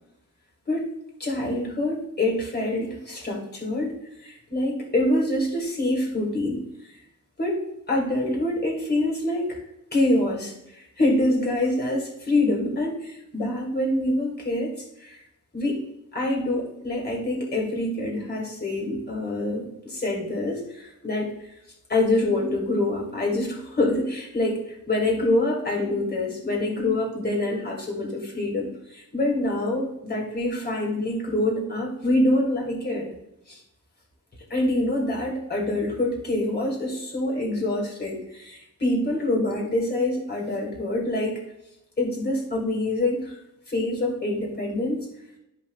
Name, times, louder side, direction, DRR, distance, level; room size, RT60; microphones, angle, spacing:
voice 1, 1.2-6.6 7.4-7.6 7.9-9.6 9.9-14.7 15.0-15.2 15.5-15.8 16.1-21.3 21.9-24.6 24.9-33.0 33.5-33.6 34.5-41.4 42.0-43.3 43.7-45.1, left 1 dB, 30° left, -2 dB, 2.3 m, -25 dB
11.0 x 5.2 x 2.4 m, 0.83 s
wide cardioid pair, 105°, 34 cm